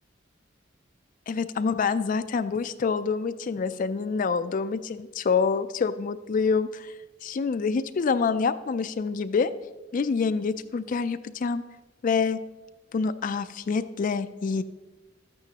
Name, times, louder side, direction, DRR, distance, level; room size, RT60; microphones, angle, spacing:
voice 1, 1.3-9.5 9.9-11.6 12.0-12.4 12.9-14.6, left 5 dB, 40° left, 12 dB, 0.3 m, -26 dB
12.5 x 8.8 x 2.8 m, 1.2 s
head